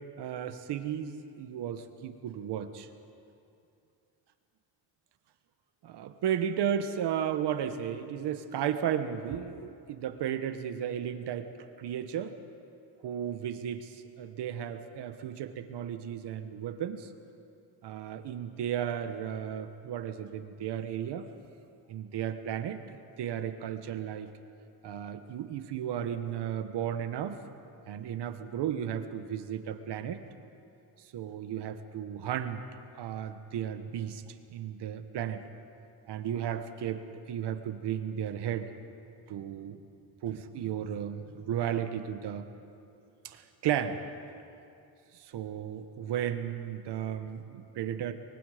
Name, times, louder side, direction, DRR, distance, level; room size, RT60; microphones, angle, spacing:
voice 1, 0.2-2.9 5.8-11.5 11.8-12.3 13.0-17.1 17.8-21.3 21.9-22.8 23.2-24.3 24.8-27.4 27.9-30.2 31.1-32.6 33.0-34.2 34.5-35.4 36.1-37.0 37.3-38.7 39.3-39.8 40.2-42.4 43.2-44.0 45.3-48.1, right 9 dB, 70° right, 9 dB, 1.4 m, -34 dB
24.0 x 23.0 x 5.1 m, 2.6 s
cardioid pair, 110°, 42 cm